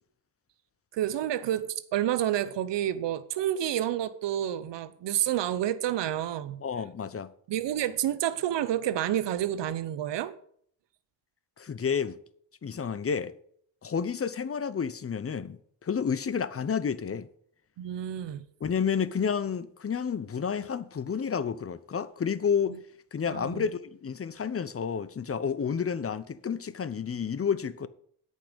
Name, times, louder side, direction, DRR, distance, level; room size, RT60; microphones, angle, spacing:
voice 1, 0.9-6.6 7.5-10.3 17.8-18.4 23.3-23.6, right 11 dB, 80° right, 0.9 m, -29 dB
voice 2, 6.6-7.3 11.6-12.2 12.6-13.3 13.8-17.3 18.6-22.8 23.1-27.9, left 6 dB, 35° left, 0.8 m, -30 dB
8.6 x 5.5 x 8.0 m
cardioid pair, 70°, 42 cm